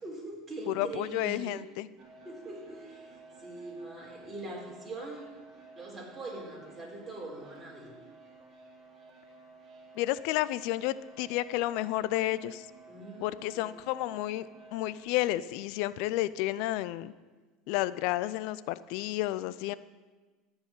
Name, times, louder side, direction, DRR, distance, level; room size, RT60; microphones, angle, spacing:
voice 1, 0.0-1.6 2.2-5.3 5.8-7.9 12.9-13.7, right 2 dB, 20° right, -3 dB, 4.3 m, -42 dB
voice 2, 0.7-1.9 10.0-12.7 13.2-17.1 17.7-19.7, left 16 dB, 70° left, 17 dB, 0.4 m, -31 dB
sound 1, 2.0-15.0, right 3 dB, 40° right, 2.7 m, -53 dB
14.5 x 4.8 x 9.0 m, 1.3 s
supercardioid pair, 120°, 0 cm